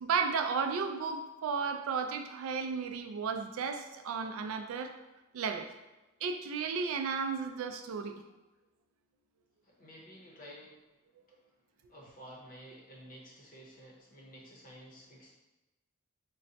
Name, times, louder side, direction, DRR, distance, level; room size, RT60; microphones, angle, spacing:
voice 1, 0.0-4.9 5.3-5.7 6.2-8.1, right 5 dB, 80° right, 6 dB, 0.3 m, -33 dB
voice 2, 9.6-10.8 11.3-11.5 11.9-15.3, equal, 40° left, -3 dB, 0.7 m, -52 dB
3.9 x 2.1 x 2.7 m, 1.1 s
head